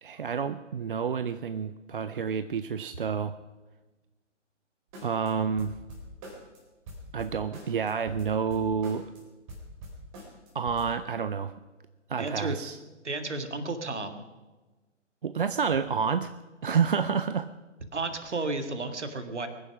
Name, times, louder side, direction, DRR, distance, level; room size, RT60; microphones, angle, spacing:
voice 1, 0.0-3.3 5.0-5.7 7.1-9.1 10.5-11.5 12.1-12.8 15.2-16.3 16.6-17.5, right 6 dB, 45° right, 12 dB, 0.6 m, -29 dB
sound 1, 4.9-5.3 5.6-6.6 6.9-9.2 9.5-10.9, equal, 30° right, 4.3 m, -44 dB
voice 2, 12.2-12.6 13.0-14.2 17.9-19.5, right 3 dB, 65° right, 8 dB, 2.0 m, -32 dB
22.0 x 10.0 x 6.1 m, 1.2 s
figure-of-eight pair, 130°, 37 cm